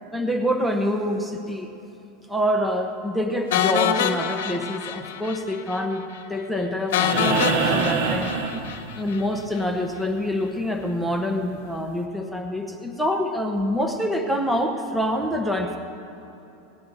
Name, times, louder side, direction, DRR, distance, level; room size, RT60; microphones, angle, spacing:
voice 1, 0.1-1.7 2.3-6.0 6.3-8.3 8.9-15.8, equal, ahead, 2 dB, 0.9 m, -26 dB
sound 1, 3.5-5.4 5.7-5.8 6.1-6.2 6.9-9.2, left 8 dB, 75° left, 1.0 m, -25 dB
sound 2, 7.0-9.3 11.1-11.2, right 6 dB, 60° right, 1.1 m, -25 dB
19.0 x 10.5 x 4.0 m, 2.9 s
supercardioid pair, 130°, 0 cm